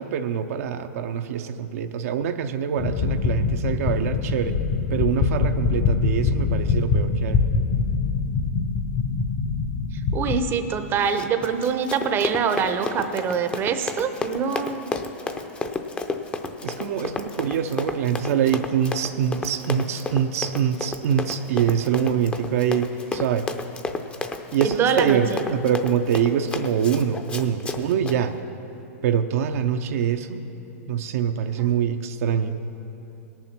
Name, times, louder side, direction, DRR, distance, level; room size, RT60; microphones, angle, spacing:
voice 1, 0.0-4.6 4.9-7.4 16.6-23.5 24.5-28.3 29.0-30.4 30.9-32.6, right 8 dB, 70° right, 7 dB, 0.6 m, -24 dB
sound 1, 2.8-10.4, left 5 dB, 40° left, 0.9 m, -24 dB
voice 2, 10.1-14.9 24.6-25.4 31.6-31.7, right 7 dB, 25° right, 8 dB, 0.7 m, -24 dB
Run, 11.0-28.2, left 3 dB, 15° left, 0.6 m, -32 dB
18.0 x 7.1 x 5.9 m, 2.9 s
hypercardioid pair, 135°, 8 cm